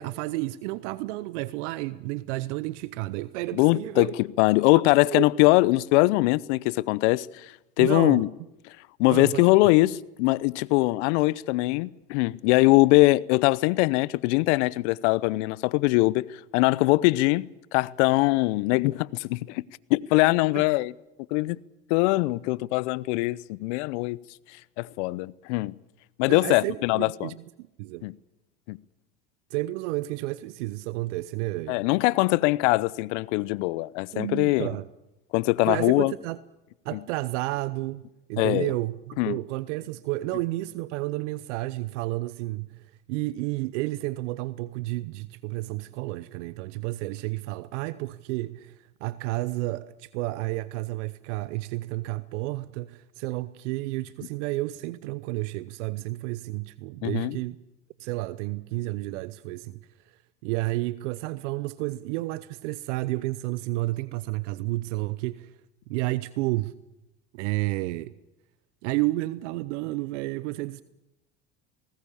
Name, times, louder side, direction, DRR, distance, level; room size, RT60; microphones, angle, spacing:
voice 1, 0.0-4.2 5.1-5.3 7.8-8.2 9.1-9.6 20.5-20.6 26.3-28.1 29.5-31.8 34.1-34.9 35.6-36.4 36.8-38.0 38.3-57.6 58.0-59.8 60.4-65.5 65.9-66.7 67.3-68.1 68.8-70.8, right 19 dB, 70° right, 0.8 m, -31 dB
voice 2, 3.5-4.1 4.4-7.5 7.8-8.3 9.0-19.6 19.9-20.9 21.3-21.6 21.9-24.2 24.8-25.7 26.2-27.3 28.0-28.1 28.7-28.8 31.7-34.7 35.3-36.1 36.9-37.0 38.4-38.7 39.2-39.4 57.0-57.4, left 21 dB, 70° left, 0.8 m, -22 dB
20.5 x 19.0 x 8.5 m
hypercardioid pair, 75°, 37 cm